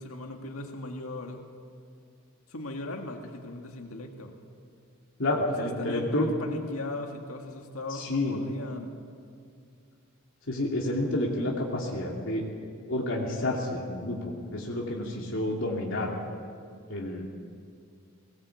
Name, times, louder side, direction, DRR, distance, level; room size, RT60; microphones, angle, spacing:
voice 1, 0.0-1.4 2.5-4.3 5.5-9.0, left 2 dB, 85° left, 3 dB, 1.9 m, -38 dB
voice 2, 5.2-6.3 7.9-8.4 10.5-12.4 12.9-16.1 16.9-17.2, left 1 dB, 65° left, -2 dB, 2.9 m, -29 dB
21.5 x 19.0 x 8.3 m, 2.3 s
head